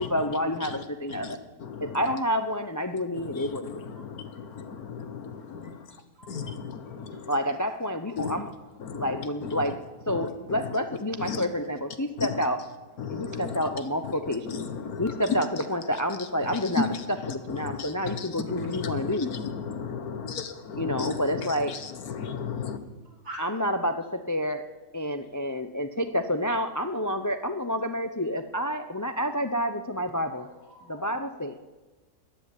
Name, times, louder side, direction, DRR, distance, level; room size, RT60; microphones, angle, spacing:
voice 1, 0.0-1.4 1.8-3.7 7.3-8.5 8.9-9.8 10.1-12.6 13.1-14.6 15.0-16.9 17.3-19.3 20.8-21.7 23.4-24.6 24.9-30.5 30.9-31.5, equal, 25° left, 8 dB, 0.3 m, -29 dB
voice 2, 1.1-2.0 3.2-5.8 6.3-7.3 8.2-8.4 8.8-9.7 10.1-10.7 11.2-11.4 12.2-12.4 13.0-15.1 16.4-22.8, left 6 dB, 70° left, 9 dB, 1.6 m, -35 dB
voice 3, 23.0-23.5 30.3-31.4, right 1 dB, 80° right, -3 dB, 4.7 m, -45 dB
14.0 x 10.0 x 9.9 m, 1.2 s
omnidirectional pair, 1.7 m